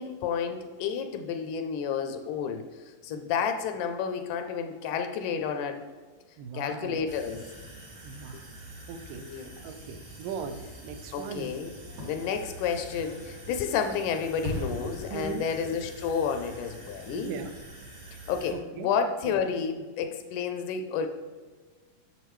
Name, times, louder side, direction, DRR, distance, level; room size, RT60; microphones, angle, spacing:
voice 1, 0.0-5.8 6.5-7.4 9.2-9.5 11.1-11.8 12.1-17.3 18.3-21.1, left 6 dB, 80° left, 6 dB, 2.0 m, -31 dB
voice 2, 6.4-7.0 8.0-8.4 8.9-9.2 9.6-11.5 15.1-15.5 17.1-17.5 18.5-18.9 19.2-19.3, right 5 dB, 90° right, 8 dB, 2.3 m, -38 dB
sound 1, 7.1-18.5, right 1 dB, 35° right, 1.4 m, -46 dB
Fireworks, 11.9-17.7 18.1-18.2, left 1 dB, 70° right, 3.4 m, -41 dB
8.2 x 7.0 x 3.1 m, 1.4 s
omnidirectional pair, 3.8 m